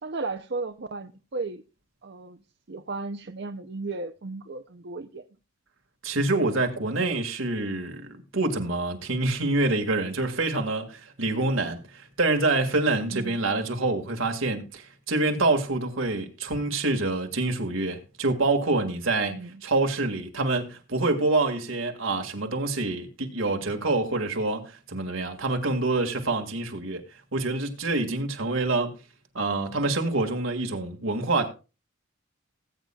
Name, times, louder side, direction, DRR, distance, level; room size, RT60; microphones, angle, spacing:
voice 1, 0.0-1.6 2.0-2.4 2.7-5.2 13.1-13.4 19.3-19.6, right 3 dB, 55° right, 0.6 m, -35 dB
voice 2, 6.0-19.4 19.6-27.0 27.3-29.0 29.3-31.5, right 2 dB, 75° right, 2.0 m, -26 dB
19.5 x 8.8 x 2.3 m
head